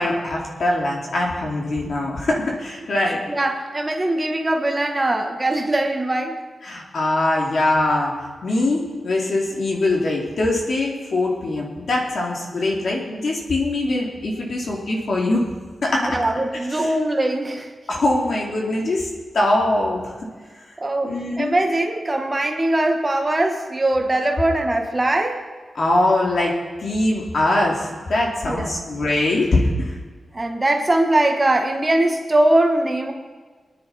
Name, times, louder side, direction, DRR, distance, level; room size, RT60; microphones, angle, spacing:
voice 1, 0.0-3.2 6.6-8.1 8.4-15.4 15.8-16.1 16.7-16.9 17.9-19.1 19.3-20.1 21.0-21.5 25.7-26.5 26.8-29.9, left 2 dB, 55° left, -2 dB, 2.9 m, -22 dB
voice 2, 3.3-6.3 15.9-17.7 20.8-25.4 28.4-28.7 30.3-33.1, right 1 dB, 20° right, 3 dB, 1.5 m, -21 dB
23.0 x 10.5 x 4.3 m, 1.4 s
wide cardioid pair, 155°, 0 cm